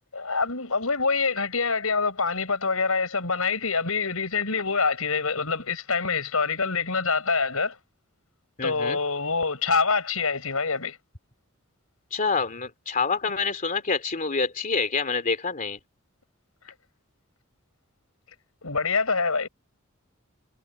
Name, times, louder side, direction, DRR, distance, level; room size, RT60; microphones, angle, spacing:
voice 1, 0.1-7.8 8.6-11.0 16.7-16.8 18.6-19.5, left 4 dB, 85° left, 5.4 m, -25 dB
voice 2, 8.6-9.0 12.1-15.8, left 4 dB, 40° left, 2.8 m, -27 dB
head